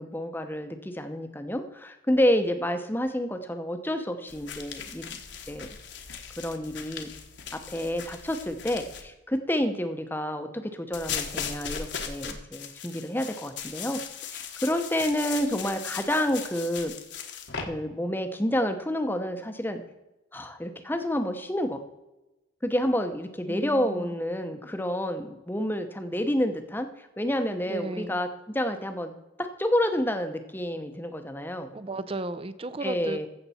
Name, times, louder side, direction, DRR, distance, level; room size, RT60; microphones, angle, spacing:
voice 1, 0.0-5.2 5.5-5.7 6.4-7.1 7.5-14.0 14.3-16.9 17.6-19.8 20.3-21.8 22.6-29.1 29.4-31.7 32.8-33.3, equal, 10° left, 7 dB, 0.8 m, -29 dB
sound 1, 4.3-9.0 10.9-17.7, left 7 dB, 65° left, 1.3 m, -38 dB
voice 2, 23.5-24.2 27.7-28.2 31.7-33.3, right 2 dB, 30° right, 14 dB, 0.5 m, -35 dB
15.0 x 6.7 x 4.2 m, 1.0 s
head